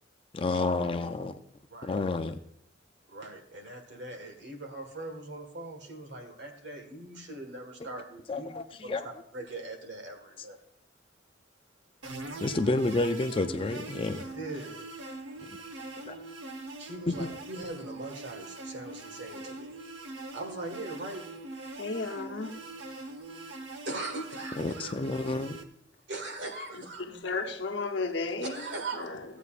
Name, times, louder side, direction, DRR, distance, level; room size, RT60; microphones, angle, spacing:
voice 1, 0.3-1.3 1.8-2.4 8.3-9.1 12.4-14.2 16.1-16.2 17.1-17.3 24.6-25.6, left 2 dB, 30° left, 8 dB, 0.4 m, -30 dB
voice 2, 3.1-8.5 8.8-9.0 9.3-10.6 14.3-14.8 16.8-19.7 20.3-21.3 22.9-23.0 23.8-25.0 26.1-27.1 28.4-29.2, right 2 dB, 65° right, 3 dB, 1.6 m, -40 dB
sound 1, 12.0-25.6, right 2 dB, 80° right, 0.9 m, -42 dB
voice 3, 21.8-22.5 27.0-28.7 29.0-29.2, left 3 dB, 70° left, 3 dB, 0.9 m, -33 dB
15.0 x 8.1 x 2.5 m, 0.75 s
head